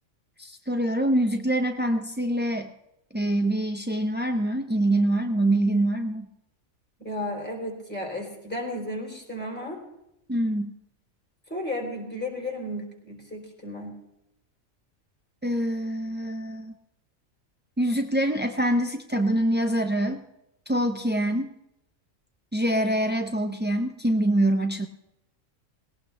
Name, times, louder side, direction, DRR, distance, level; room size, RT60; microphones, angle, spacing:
voice 1, 0.4-2.7 3.1-6.3 10.3-10.7 15.4-16.7 17.8-20.2 20.7-21.5 22.5-24.9, right 1 dB, 15° right, 4 dB, 0.4 m, -25 dB
voice 2, 7.0-9.8 11.5-14.0, left 1 dB, 5° left, 0 dB, 3.7 m, -33 dB
19.5 x 18.0 x 3.3 m, 0.86 s
omnidirectional pair, 1.4 m